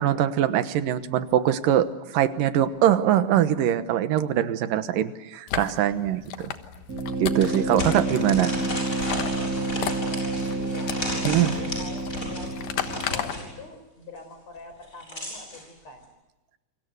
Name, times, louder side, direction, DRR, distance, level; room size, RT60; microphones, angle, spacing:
voice 1, 0.0-6.5 7.2-8.5 11.2-11.5, right 11 dB, 80° right, 12 dB, 2.8 m, -23 dB
sound 1, 5.5-13.4, left 10 dB, 80° left, 3.0 m, -35 dB
sound 2, 6.9-13.5, right 2 dB, 25° right, 3.6 m, -29 dB
sound 3, 7.4-13.5 14.7-15.6, left 1 dB, 20° left, 7.5 m, -34 dB
voice 2, 7.6-8.3 9.5-16.0, left 4 dB, 50° left, 7 dB, 6.0 m, -44 dB
28.5 x 24.5 x 8.1 m, 1.0 s
omnidirectional pair, 3.9 m